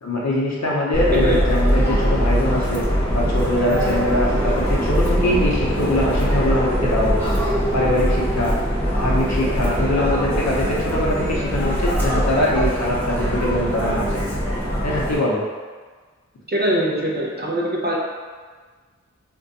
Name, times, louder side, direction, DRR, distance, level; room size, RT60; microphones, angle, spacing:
voice 1, 0.0-2.8 3.1-7.3 7.7-8.5 9.0-14.2 14.8-15.4, left 1 dB, 65° left, -4 dB, 0.8 m, -22 dB
Subway metro underground, 0.9-15.2, equal, 5° left, 0.9 m, -22 dB
voice 2, 16.5-18.0, right 1 dB, 35° right, -4 dB, 0.5 m, -22 dB
2.6 x 2.2 x 3.9 m, 1.5 s
wide cardioid pair, 65°, 29 cm